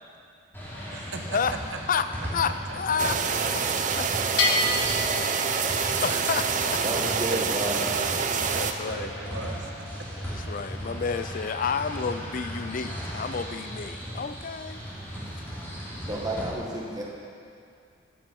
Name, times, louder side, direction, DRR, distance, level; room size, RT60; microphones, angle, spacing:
sound 1, 0.5-16.4, equal, 10° left, 3.3 m, -37 dB
voice 1, 0.9-1.4 2.4-3.4 7.3-7.4 8.5-10.1, right 2 dB, 75° right, 3 dB, 1.1 m, -39 dB
voice 2, 2.3-3.2 3.5-3.6 3.9-4.1 5.7-6.8 8.5-9.1 10.2-14.8 15.3-15.4, left 6 dB, 45° left, 11 dB, 0.4 m, -30 dB
sound 2, 3.0-8.7, right 6 dB, 40° right, 0.6 m, -27 dB
Bell, 4.4-6.1, left 3 dB, 70° left, 1.7 m, -27 dB
voice 3, 6.8-7.9 16.1-17.0, right 1 dB, 20° right, -4 dB, 1.7 m, -31 dB
12.5 x 8.9 x 5.3 m, 2.4 s
head